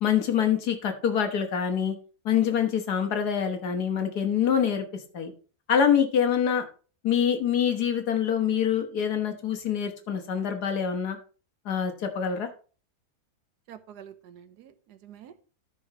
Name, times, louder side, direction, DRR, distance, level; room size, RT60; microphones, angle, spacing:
voice 1, 0.0-2.0 2.3-4.9 5.1-5.3 5.7-6.6 7.0-11.2 11.7-12.5, left 8 dB, 75° left, 5 dB, 1.9 m, -25 dB
voice 2, 13.7-15.5, right 9 dB, 85° right, 11 dB, 1.4 m, -48 dB
13.5 x 6.2 x 3.0 m, 0.39 s
omnidirectional pair, 1.7 m